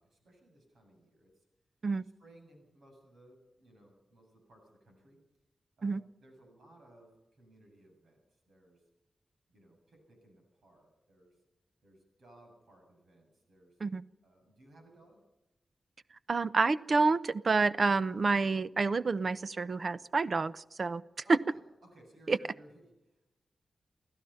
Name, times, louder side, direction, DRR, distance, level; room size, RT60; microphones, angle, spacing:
voice 1, 0.0-1.4 2.0-5.2 5.8-8.8 9.5-11.4 11.8-13.8 14.2-15.2 21.2-23.3, right 1 dB, 80° right, 2 dB, 7.7 m, -60 dB
voice 2, 16.3-21.0 21.3-21.4 22.3-22.4, right 4 dB, 45° right, 16 dB, 0.6 m, -28 dB
29.0 x 16.0 x 5.7 m, 0.98 s
wide cardioid pair, 180°, 0 cm